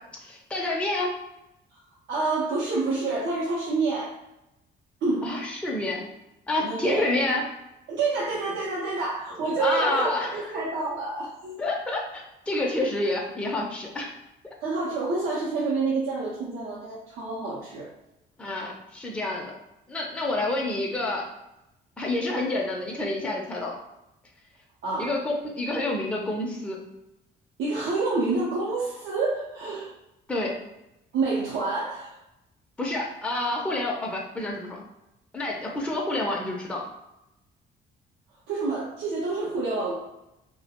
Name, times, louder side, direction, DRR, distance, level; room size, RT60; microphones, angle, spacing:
voice 1, 0.2-1.1 5.2-6.0 6.5-7.4 9.6-10.5 11.6-14.1 18.4-19.5 19.9-21.2 22.0-23.8 25.0-26.8 30.3-30.5 32.8-34.8 35.3-36.8, left 2 dB, 5° left, -2 dB, 0.5 m, -28 dB
voice 2, 2.1-4.2 5.0-5.3 6.6-7.1 7.9-11.6 14.6-17.9 24.8-25.1 27.6-29.9 31.1-32.2 38.5-39.9, right 3 dB, 80° right, -6 dB, 0.6 m, -28 dB
2.2 x 2.1 x 2.8 m, 0.91 s
cardioid pair, 90°, 20 cm